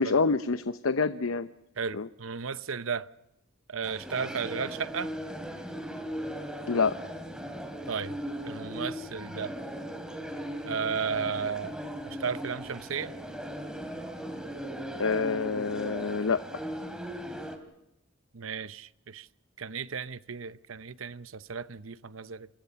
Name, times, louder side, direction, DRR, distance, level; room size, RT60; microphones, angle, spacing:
voice 1, 0.0-1.5 1.9-2.1 6.7-6.9 15.0-16.6, left 4 dB, 85° left, 0.8 m, -27 dB
voice 2, 1.8-3.1 3.7-5.1 7.9-8.2 8.4-9.6 10.6-11.8 12.1-13.1 18.3-19.3 19.6-22.5, right 6 dB, 85° right, 0.8 m, -34 dB
sound 1, 3.8-17.6, equal, 5° right, 2.9 m, -38 dB
28.5 x 22.5 x 5.8 m
head